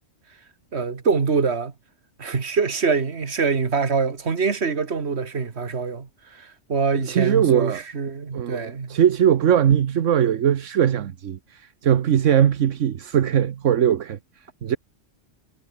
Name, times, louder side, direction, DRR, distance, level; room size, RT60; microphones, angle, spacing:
voice 1, 0.7-1.7 2.2-9.0, right 5 dB, 60° right, 2.1 m, -24 dB
voice 2, 6.9-7.8 8.3-14.2 14.6-14.8, right 9 dB, 80° right, 1.3 m, -20 dB
omnidirectional pair, 1.3 m